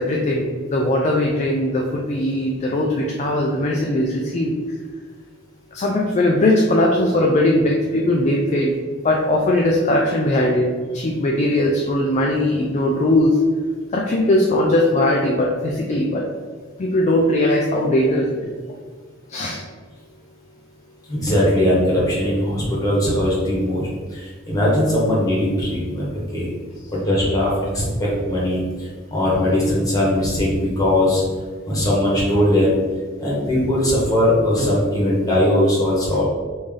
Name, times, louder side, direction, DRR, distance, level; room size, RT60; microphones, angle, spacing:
voice 1, 0.0-4.5 5.7-8.8 9.0-13.4 13.9-16.3 16.8-18.5 19.3-19.6, left 1 dB, 35° left, -1 dB, 0.4 m, -19 dB
voice 2, 21.1-26.5 26.9-31.2 31.6-32.8 33.2-36.2, left 1 dB, 20° left, -6 dB, 1.1 m, -20 dB
3.2 x 2.6 x 3.6 m, 1.5 s
head